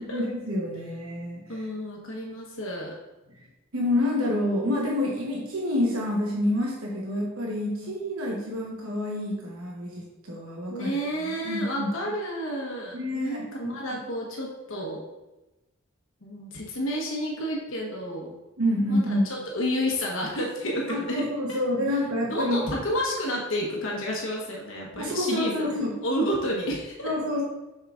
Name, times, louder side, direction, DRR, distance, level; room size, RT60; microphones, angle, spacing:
voice 1, 0.1-1.5 3.4-3.5 3.7-10.9 11.2-11.9 12.9-13.8 18.6-19.3 20.9-22.7 25.0-25.9 27.0-27.4, left 1 dB, 90° right, -2 dB, 1.0 m, -28 dB
voice 2, 1.5-2.9 7.8-7.9 10.7-15.0 16.2-18.3 18.9-21.2 21.5-21.6 22.3-25.7 26.0-27.1, equal, 70° left, -2 dB, 1.2 m, -30 dB
7.0 x 5.6 x 2.4 m, 1.0 s
head